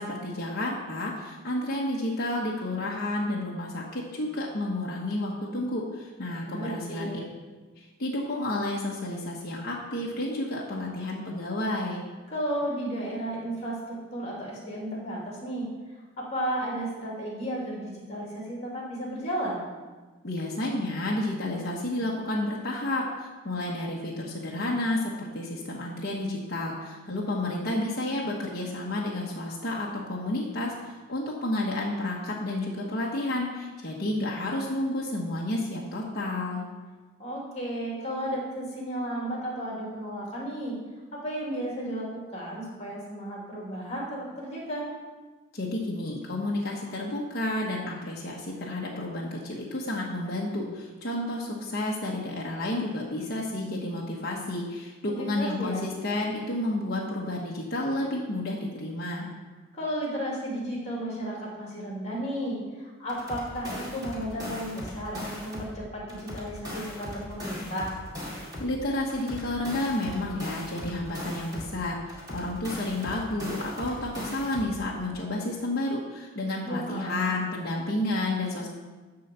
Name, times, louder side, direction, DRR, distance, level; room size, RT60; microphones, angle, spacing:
voice 1, 0.0-7.3 7.8-12.0 20.2-36.6 45.5-59.3 68.6-78.7, left 1 dB, 45° left, -4 dB, 1.1 m, -31 dB
voice 2, 6.4-7.2 12.3-13.8 14.1-15.7 16.2-19.6 37.2-40.8 41.1-44.8 55.1-55.8 59.7-67.9 76.7-77.3, right 1 dB, 30° left, -3 dB, 2.4 m, -33 dB
sound 1, 63.1-65.8 66.1-68.8 69.1-71.8 72.1-74.8, left 1 dB, 20° right, 2.3 m, -39 dB
11.0 x 3.9 x 6.7 m, 1.3 s
head